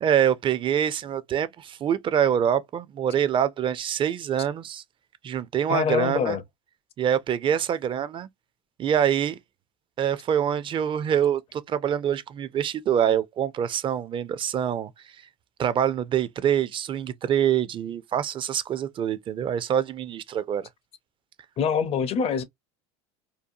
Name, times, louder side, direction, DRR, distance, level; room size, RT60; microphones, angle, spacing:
voice 1, 0.0-4.8 5.2-6.4 7.0-8.3 8.8-9.4 10.0-15.2 15.6-20.7, right 9 dB, 30° right, 0.4 m, -25 dB
voice 2, 5.7-6.4 21.6-22.4, left 6 dB, 35° left, 0.5 m, -24 dB
2.7 x 2.2 x 2.5 m
supercardioid pair, 100°, 17 cm